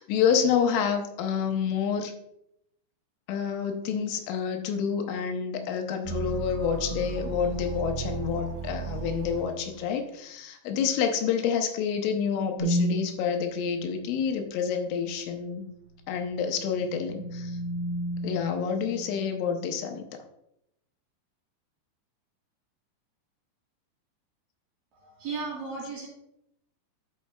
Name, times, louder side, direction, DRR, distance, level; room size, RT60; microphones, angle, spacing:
voice 1, 0.0-2.1 3.3-15.7 16.1-17.6 18.2-20.0, left 7 dB, 85° left, 5 dB, 3.3 m, -28 dB
sound 1, 6.1-9.8, right 7 dB, 80° right, 2.3 m, -35 dB
sound 2, 12.6-13.1 16.0-19.5, right 1 dB, 30° left, 0.6 m, -32 dB
voice 2, 24.9-26.1, right 4 dB, 60° right, -4 dB, 2.6 m, -35 dB
12.0 x 6.1 x 2.3 m, 0.77 s
omnidirectional pair, 5.5 m